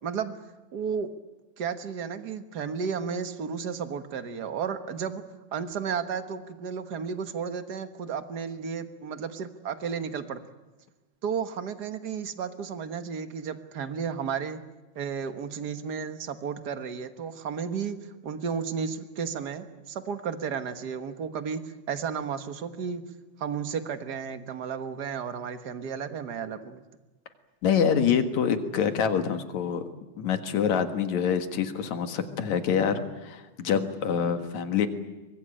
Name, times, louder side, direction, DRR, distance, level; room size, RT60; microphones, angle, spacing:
voice 1, 0.0-0.3 0.7-1.1 1.6-5.2 5.5-10.4 11.2-14.6 14.9-18.0 18.2-21.6 21.9-23.0 23.4-26.8, right 6 dB, 50° right, 9 dB, 1.3 m, -33 dB
voice 2, 27.6-29.8 30.2-34.9, left 7 dB, 70° left, 7 dB, 2.9 m, -26 dB
24.0 x 21.0 x 8.9 m, 1.1 s
omnidirectional pair, 3.4 m